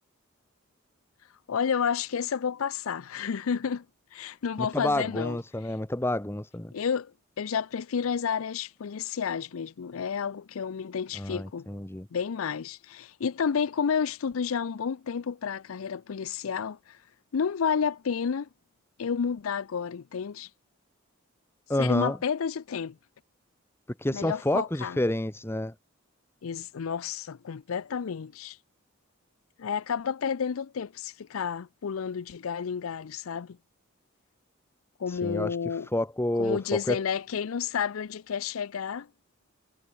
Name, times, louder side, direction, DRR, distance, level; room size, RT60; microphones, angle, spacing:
voice 1, 1.5-3.8 4.1-5.4 6.7-7.1 7.4-11.7 12.1-17.0 17.3-18.5 19.0-20.5 21.8-23.0 24.1-25.0 26.4-28.6 29.6-33.6 35.0-35.9 36.4-39.1, left 6 dB, 90° left, 0.5 m, -30 dB
voice 2, 4.6-6.7 11.1-12.1 21.7-22.2 24.0-25.7 35.1-35.5 35.9-36.6 36.9-37.0, left 1 dB, 10° left, 0.9 m, -29 dB
head